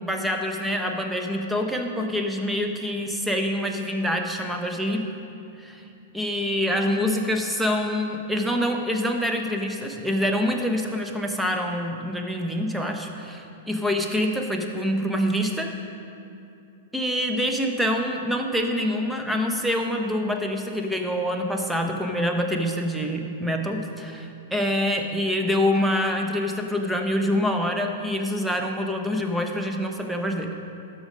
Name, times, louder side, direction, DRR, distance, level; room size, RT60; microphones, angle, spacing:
voice 1, 0.0-5.1 5.6-5.8 6.1-15.7 16.9-30.5, equal, 5° right, 3 dB, 0.9 m, -26 dB
12.5 x 5.2 x 5.1 m, 2.6 s
figure-of-eight pair, 105°, 0 cm